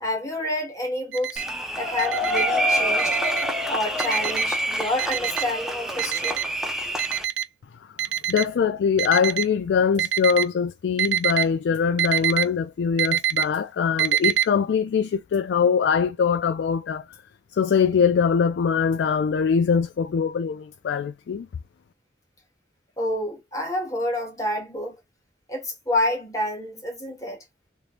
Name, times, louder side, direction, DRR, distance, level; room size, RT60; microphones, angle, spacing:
voice 1, 0.0-1.4 1.8-3.2 3.7-6.4 23.0-25.0 25.5-27.4, left 1 dB, 20° left, 1.4 m, -28 dB
Alarm, 1.1-1.4 2.0-2.4 3.0-3.4 4.0-4.4 5.0-5.4 6.0-6.5 7.0-7.5 8.0-8.5 9.0-9.5 10.0-10.5 11.0-11.4 12.0-12.4 13.0-13.4 14.0-14.4, right 11 dB, 85° right, 0.4 m, -24 dB
sound 1, 1.4-7.2, equal, ahead, 0.7 m, -26 dB
voice 2, 8.3-17.1 17.5-21.5, left 6 dB, 75° left, 0.3 m, -22 dB
3.2 x 3.0 x 2.4 m
head